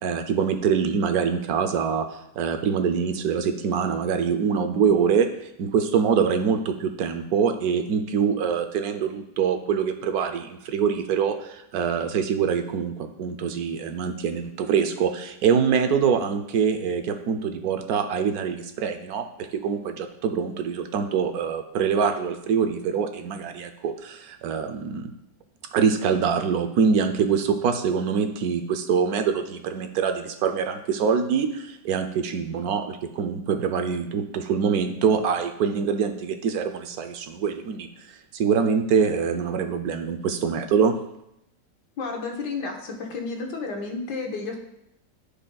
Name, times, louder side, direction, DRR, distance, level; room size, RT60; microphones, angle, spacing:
voice 1, 0.0-2.1 2.4-5.3 5.6-12.9 13.2-25.1 25.7-37.9 38.3-40.9, right 6 dB, 70° right, 7 dB, 1.0 m, -24 dB
voice 2, 42.0-44.6, left 4 dB, 75° left, 2 dB, 1.7 m, -31 dB
14.0 x 5.1 x 2.3 m, 0.81 s
omnidirectional pair, 1.8 m